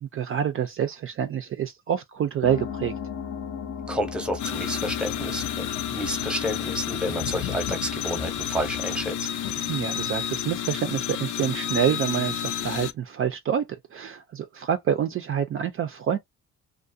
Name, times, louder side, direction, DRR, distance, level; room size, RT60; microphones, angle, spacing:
voice 1, 0.0-2.9 9.6-13.6 13.9-16.2, right 9 dB, 45° right, 0.4 m, -27 dB
sound 1, 2.4-10.6, left 7 dB, 40° left, 0.6 m, -38 dB
voice 2, 3.9-9.3, equal, 5° right, 0.7 m, -30 dB
sound 2, 4.4-12.9, left 10 dB, 85° left, 0.5 m, -30 dB
2.4 x 2.1 x 2.5 m
cardioid pair, 90°, 30 cm